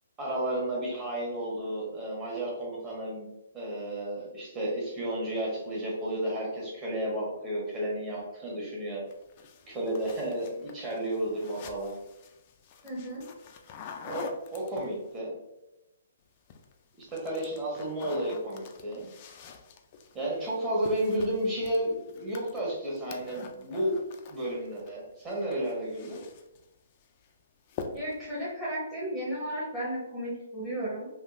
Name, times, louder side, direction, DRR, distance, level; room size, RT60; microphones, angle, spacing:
voice 1, 0.2-3.3 3.5-9.0 9.6-12.0 14.0-15.3 17.0-19.1 20.1-24.0 24.3-26.2, right 1 dB, 20° right, -5 dB, 1.2 m, -32 dB
sound 1, 9.1-15.1 16.3-16.7 17.0-24.9 25.2-26.7 27.0-27.3 27.7-28.3, left 5 dB, 35° left, 0.3 m, -45 dB
voice 2, 12.8-13.2 27.9-31.1, right 1 dB, ahead, -9 dB, 0.8 m, -34 dB
3.5 x 2.5 x 2.5 m, 0.92 s
hypercardioid pair, 155°, 0 cm